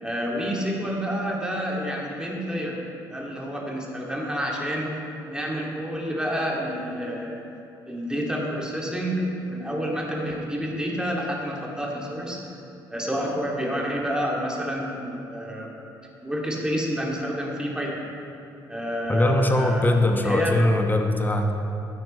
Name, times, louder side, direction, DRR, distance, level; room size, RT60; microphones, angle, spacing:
voice 1, 0.0-2.8 3.1-5.0 5.3-7.4 7.9-12.4 12.9-15.7 16.2-18.0 18.7-20.5, equal, 5° right, -2 dB, 2.4 m, -29 dB
voice 2, 19.1-21.5, left 1 dB, 15° left, 4 dB, 1.3 m, -21 dB
15.0 x 9.1 x 3.2 m, 2.9 s
figure-of-eight pair, 50°, 12 cm